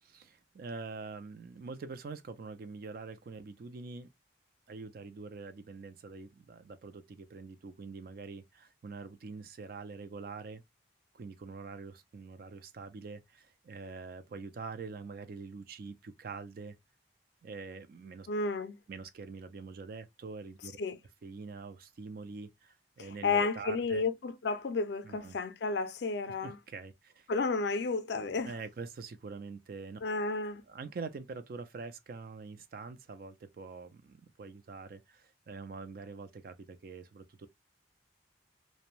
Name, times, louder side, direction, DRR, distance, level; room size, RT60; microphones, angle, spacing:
voice 1, 0.0-4.1 4.7-10.6 11.1-16.8 17.4-18.3 18.9-20.8 21.2-24.0 25.0-25.4 26.4-27.3 28.4-30.0 30.7-37.5, right 4 dB, 50° right, 0.3 m, -45 dB
voice 2, 18.3-18.8 20.8-21.0 23.0-26.6 27.3-28.5 30.0-30.6, left 4 dB, 65° left, 0.4 m, -32 dB
2.6 x 2.1 x 2.9 m
head